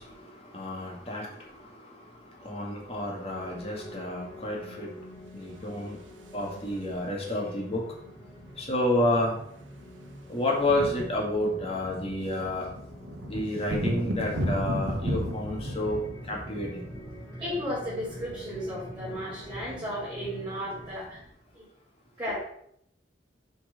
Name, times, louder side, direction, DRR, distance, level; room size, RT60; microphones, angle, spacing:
voice 1, 0.0-4.9 5.3-6.0 6.3-7.8 8.6-9.4 10.3-12.7 13.3-16.0 16.3-16.9, left 1 dB, 30° left, -2 dB, 2.0 m, -30 dB
sound 1, 3.3-21.0, equal, 15° left, 2.1 m, -46 dB
sound 2, 5.5-7.0 8.3-8.4 8.6-8.9 9.1-21.2, equal, 90° right, 1.1 m, -36 dB
voice 2, 17.4-21.2 21.5-21.6 22.2-22.4, equal, 25° right, -11 dB, 3.3 m, -34 dB
6.6 x 4.6 x 5.2 m, 0.71 s
head